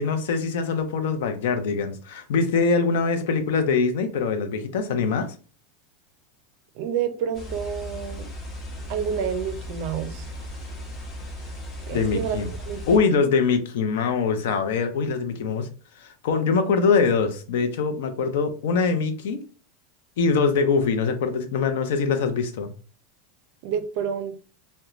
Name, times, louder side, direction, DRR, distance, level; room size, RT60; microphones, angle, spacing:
voice 1, 0.0-5.3 11.9-12.5 12.9-15.7 16.0-19.4 20.2-22.7, left 5 dB, 75° left, 0.5 m, -23 dB
voice 2, 6.8-8.3 8.9-10.3 11.9-13.3 23.6-24.4, right 8 dB, 50° right, 0.4 m, -29 dB
sound 1, 7.3-13.0, equal, 30° left, 0.7 m, -36 dB
2.9 x 2.1 x 2.4 m
supercardioid pair, 160°, 0 cm